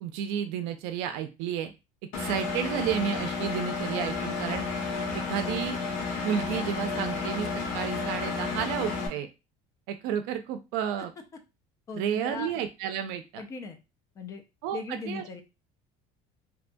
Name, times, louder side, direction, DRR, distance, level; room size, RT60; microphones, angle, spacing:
voice 1, 0.0-1.7 2.2-4.7 5.1-5.8 6.2-7.5 7.7-9.3 9.9-11.1 12.0-13.4 14.6-15.2, right 9 dB, 90° right, 8 dB, 0.4 m, -31 dB
Engine, 2.1-9.1, left 4 dB, 85° left, 0.9 m, -31 dB
voice 2, 11.9-12.5 13.4-13.8 14.2-14.4 14.7-15.4, left 4 dB, 20° left, 6 dB, 0.4 m, -38 dB
2.8 x 2.2 x 2.5 m, 0.27 s
cardioid pair, 170°, 16 cm